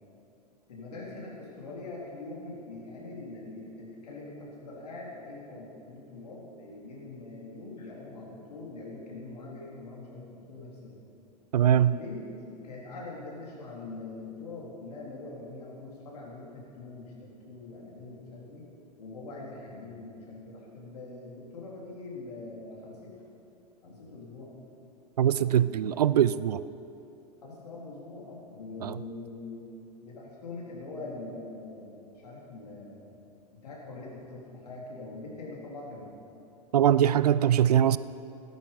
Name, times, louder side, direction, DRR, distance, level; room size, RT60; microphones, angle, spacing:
voice 1, 0.7-11.0 11.6-12.2 12.6-18.7 19.0-23.2 23.8-24.5 27.4-29.7 30.0-33.1 33.5-36.1, left 2 dB, 65° left, -3 dB, 3.9 m, -43 dB
voice 2, 11.5-11.9 25.2-26.6 28.8-29.0 36.7-38.0, right 10 dB, 65° right, 17 dB, 0.4 m, -22 dB
15.0 x 12.0 x 5.5 m, 2.7 s
figure-of-eight pair, 90°, 21 cm